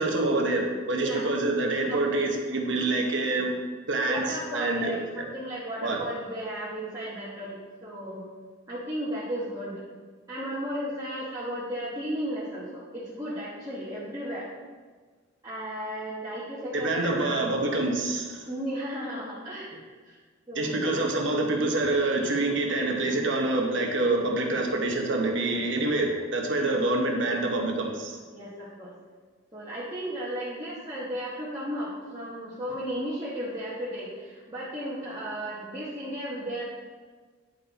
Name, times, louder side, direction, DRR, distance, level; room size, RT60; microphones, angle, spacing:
voice 1, 0.0-3.5 3.9-5.2 5.8-6.0 16.7-18.5 20.5-28.2, right 2 dB, 65° right, 1 dB, 1.1 m, -26 dB
voice 2, 1.8-2.2 4.1-8.3 8.7-9.8 10.3-14.5 15.4-17.8 18.4-20.2 20.5-21.0 26.5-26.8 28.3-28.9 29.5-36.6, equal, 15° right, -10 dB, 1.2 m, -35 dB
10.0 x 4.0 x 4.1 m, 1.5 s
head